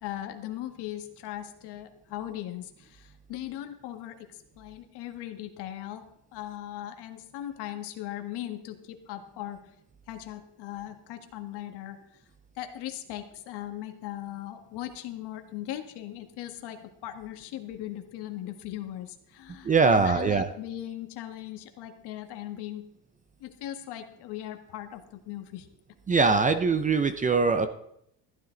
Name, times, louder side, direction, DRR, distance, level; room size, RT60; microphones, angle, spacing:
voice 1, 0.0-9.6 10.1-12.0 12.5-22.9 23.4-25.7, left 13 dB, 70° left, 6 dB, 1.7 m, -39 dB
voice 2, 19.6-20.5 26.1-27.7, right 4 dB, 20° right, 9 dB, 0.5 m, -22 dB
14.5 x 12.5 x 3.9 m, 0.75 s
cardioid pair, 155°, 42 cm